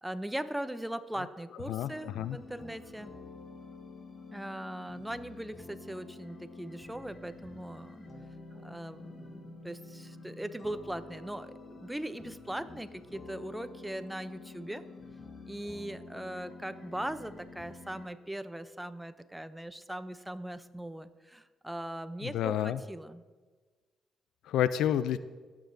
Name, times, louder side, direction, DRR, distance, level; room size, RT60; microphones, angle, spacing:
voice 1, 0.0-3.1 4.3-8.1 8.5-14.8 15.5-23.2, right 1 dB, 5° right, 12 dB, 0.5 m, -40 dB
voice 2, 1.7-2.4 22.2-22.8 24.5-25.2, left 10 dB, 85° left, 15 dB, 0.3 m, -29 dB
sound 1, 1.8-18.1, left 3 dB, 40° left, 1.5 m, -49 dB
16.0 x 7.3 x 2.6 m, 1.4 s
cardioid pair, 90°, 0 cm